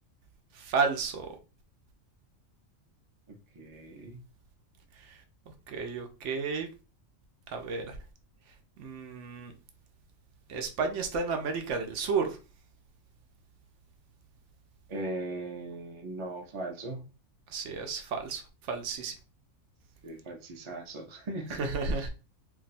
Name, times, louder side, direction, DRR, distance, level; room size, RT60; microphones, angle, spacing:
voice 1, 0.5-1.3 5.0-5.2 5.7-6.7 7.5-8.0 8.8-9.5 10.5-12.4 17.5-18.4 18.7-19.2 21.5-22.1, right 5 dB, 75° right, 0.9 m, -32 dB
voice 2, 3.3-4.2 14.9-17.0 20.0-22.1, right 2 dB, 35° right, 0.5 m, -39 dB
2.6 x 2.3 x 4.0 m
omnidirectional pair, 1.3 m